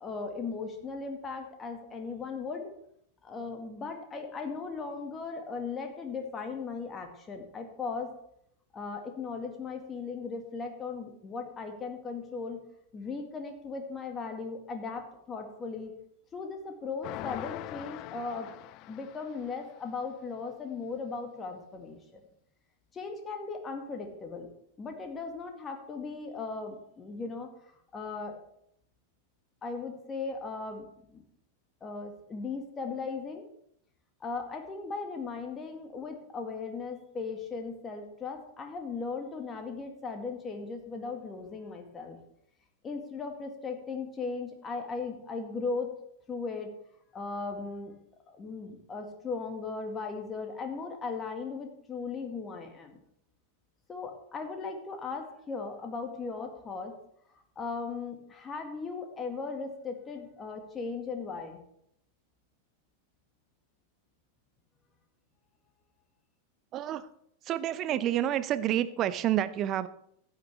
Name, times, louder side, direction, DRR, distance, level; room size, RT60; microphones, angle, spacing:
voice 1, 0.0-2.7 3.2-8.1 8.7-12.6 12.9-15.9 16.3-18.5 18.9-22.2 22.9-24.5 24.8-27.5 27.9-28.4 29.6-31.2 31.8-33.5 34.2-42.2 42.8-45.9 46.3-46.7 47.1-47.9 48.3-53.0 53.9-56.9 57.6-61.6, left 4 dB, 20° left, 4 dB, 1.9 m, -37 dB
sound 1, 17.0-19.8, left 16 dB, 40° left, 0.3 m, -42 dB
voice 2, 66.7-67.1 67.4-69.9, right 11 dB, 35° right, 14 dB, 0.6 m, -29 dB
15.5 x 9.0 x 3.5 m, 0.71 s
figure-of-eight pair, 90°, 0 cm